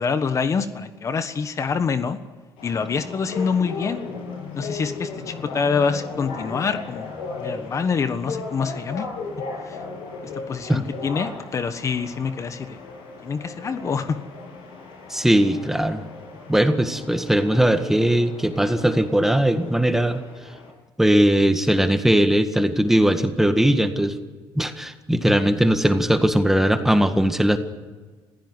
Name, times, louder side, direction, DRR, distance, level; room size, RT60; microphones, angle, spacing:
voice 1, 0.0-2.2 2.6-4.0 4.5-9.1 9.7-9.8 10.5-12.8 13.2-14.2 25.1-25.4, left 5 dB, 35° left, 10 dB, 1.4 m, -26 dB
sound 1, 2.6-20.7, left 4 dB, 85° left, 7.8 m, -36 dB
voice 2, 15.1-16.1 16.5-20.2 21.0-24.1 24.5-27.6, right 1 dB, 5° right, 8 dB, 1.7 m, -19 dB
26.5 x 16.0 x 9.8 m, 1.4 s
cardioid pair, 105°, 9 cm